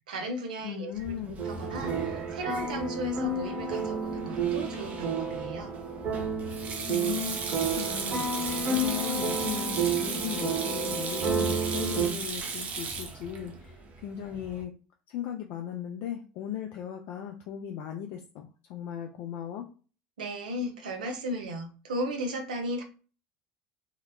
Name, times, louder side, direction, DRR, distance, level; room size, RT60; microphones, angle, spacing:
voice 1, 0.1-5.7 20.2-22.8, right 1 dB, 85° right, 4 dB, 0.5 m, -35 dB
voice 2, 0.6-1.4 6.9-14.7 15.1-19.6, left 10 dB, 60° left, 3 dB, 0.4 m, -37 dB
Sink (filling or washing), 0.9-14.6, right 4 dB, 35° right, 0.5 m, -37 dB
sound 1, 1.4-12.1, right 3 dB, 55° right, 1.4 m, -31 dB
2.8 x 2.0 x 2.2 m, 0.36 s
hypercardioid pair, 85°, 4 cm